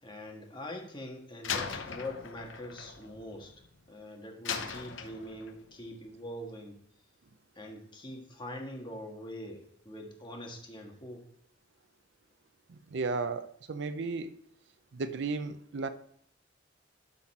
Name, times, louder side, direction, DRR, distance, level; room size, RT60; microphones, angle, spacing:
voice 1, 0.0-3.5 3.9-6.8 7.5-11.2, left 1 dB, 25° left, 1 dB, 1.5 m, -43 dB
Slam, 1.4-3.9 4.5-5.7, left 6 dB, 75° left, 0.8 m, -39 dB
voice 2, 12.7-14.3 14.9-15.9, right 4 dB, 60° right, 11 dB, 0.5 m, -34 dB
12.0 x 4.1 x 4.2 m, 0.68 s
head